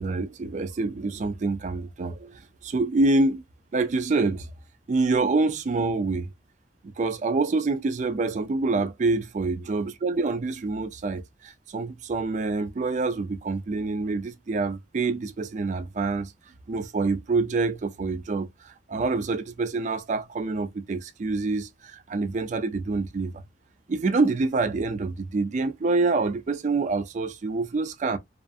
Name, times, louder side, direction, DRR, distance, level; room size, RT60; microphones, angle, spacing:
voice 1, 0.0-3.4 3.7-4.5 4.9-6.3 6.8-16.3 16.7-23.3 23.9-28.2, right 3 dB, 40° right, 0.3 m, -26 dB
2.4 x 2.4 x 2.5 m
head